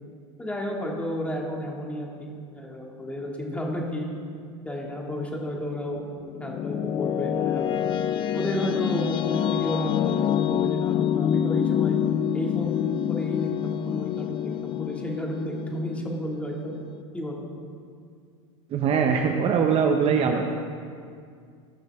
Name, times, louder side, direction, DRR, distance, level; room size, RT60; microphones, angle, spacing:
voice 1, 0.4-4.1 4.7-6.0 6.4-7.8 8.3-12.0 12.3-16.7 17.1-17.5, left 1 dB, 10° left, -1 dB, 2.2 m, -32 dB
sound 1, 6.0-17.0, left 9 dB, 30° left, 0.4 m, -27 dB
voice 2, 18.7-20.6, right 6 dB, 35° right, 4 dB, 0.8 m, -22 dB
18.5 x 6.5 x 3.6 m, 2.2 s
hypercardioid pair, 115°, 17 cm